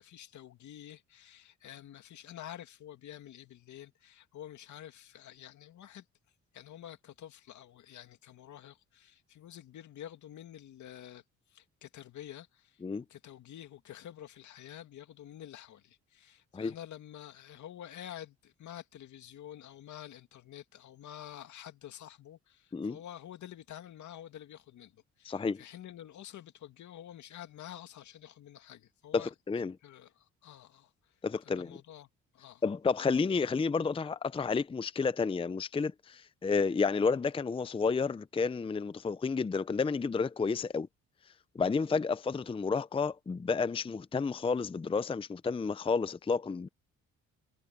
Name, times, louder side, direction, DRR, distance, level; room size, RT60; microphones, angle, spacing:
voice 1, 0.0-6.0 6.5-11.2 11.5-12.8 13.1-29.3 29.8-31.1 31.4-32.6, left 11 dB, 75° left, 2.4 m, -49 dB
voice 2, 25.2-25.6 29.1-29.7 31.2-31.8 32.6-40.9 41.5-46.7, left 5 dB, 20° left, 0.5 m, -31 dB
cardioid pair, 90°, 30 cm